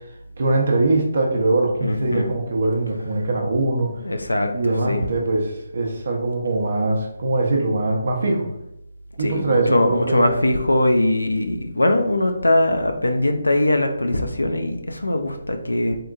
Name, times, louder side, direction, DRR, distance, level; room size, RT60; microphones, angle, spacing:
voice 1, 0.4-4.0 4.5-8.5 9.2-10.3, right 2 dB, 55° right, 1 dB, 0.6 m, -22 dB
voice 2, 1.8-2.2 4.0-5.0 9.2-16.0, left 1 dB, 85° left, 5 dB, 0.3 m, -21 dB
2.8 x 2.6 x 2.3 m, 0.86 s
figure-of-eight pair, 150°, 0 cm